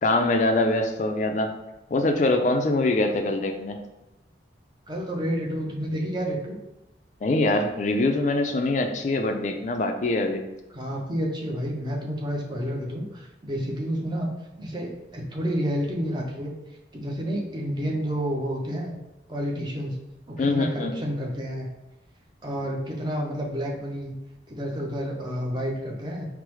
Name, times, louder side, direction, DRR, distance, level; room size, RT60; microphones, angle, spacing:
voice 1, 0.0-1.5 1.9-3.8 7.2-10.4 20.4-20.9, left 2 dB, 40° left, 4 dB, 0.3 m, -23 dB
voice 2, 4.9-6.6 10.7-16.5 16.9-18.9 19.3-20.0 20.3-21.7 22.4-24.1 24.5-26.3, equal, 25° right, 0 dB, 0.5 m, -30 dB
4.7 x 2.0 x 3.0 m, 0.99 s
head